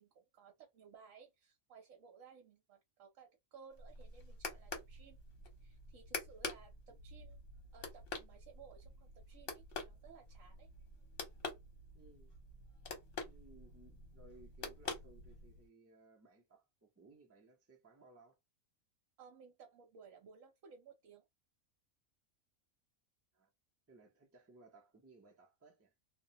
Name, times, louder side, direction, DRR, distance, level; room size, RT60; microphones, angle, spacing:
voice 1, 0.0-5.2 5.6-7.4 7.7-10.7 19.2-21.3, right 6 dB, 75° right, 1.1 m, -59 dB
sound 1, 3.7-15.7, left 4 dB, 50° left, 0.9 m, -47 dB
voice 2, 11.9-12.3 13.3-18.4 23.3-23.5 23.9-25.9, right 2 dB, 15° right, 0.5 m, -62 dB
2.3 x 2.1 x 2.8 m
omnidirectional pair, 1.4 m